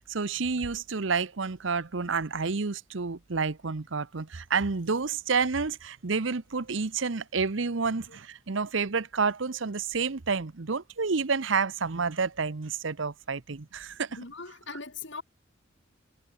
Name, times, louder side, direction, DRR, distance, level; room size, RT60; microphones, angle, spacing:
voice 1, 0.0-14.2 14.7-14.8, right 5 dB, 65° right, 0.9 m, -29 dB
voice 2, 14.2-15.2, left 4 dB, 60° left, 3.0 m, -40 dB
head